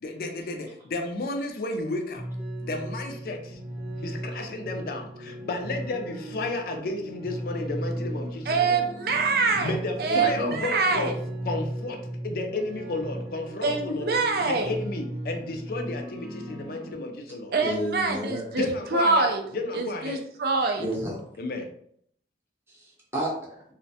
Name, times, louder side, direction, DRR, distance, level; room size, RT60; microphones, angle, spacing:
voice 1, 0.0-2.2 2.6-3.6 4.0-8.9 9.6-11.1 11.4-14.2 14.5-17.5 18.6-19.3 19.5-20.2 21.4-21.7, left 2 dB, 55° left, 4 dB, 0.4 m, -32 dB
sound 1, 2.2-16.9, right 1 dB, 85° right, 0.8 m, -37 dB
voice 2, 8.5-9.7 10.0-11.1 13.6-14.7 17.5-18.7 18.9-19.4 19.7-20.8, right 4 dB, 60° right, 3 dB, 0.4 m, -25 dB
voice 3, 10.1-10.6 17.6-18.5 20.8-21.2 22.7-23.6, equal, 15° right, -4 dB, 0.7 m, -31 dB
2.4 x 2.1 x 2.6 m, 0.67 s
head